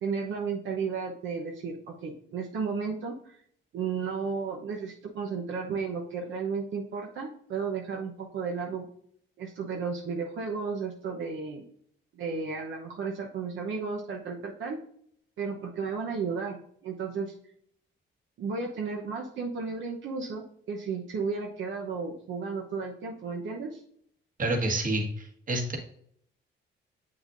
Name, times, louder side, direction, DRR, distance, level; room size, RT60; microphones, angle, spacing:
voice 1, 0.0-3.4 3.7-8.9 9.4-11.6 12.1-14.8 15.4-17.3 18.4-23.8, right 5 dB, 70° right, 0 dB, 1.0 m, -33 dB
voice 2, 24.4-25.8, right 1 dB, 45° right, 2 dB, 1.7 m, -28 dB
7.6 x 5.8 x 2.6 m, 0.65 s
cardioid pair, 90°, 20 cm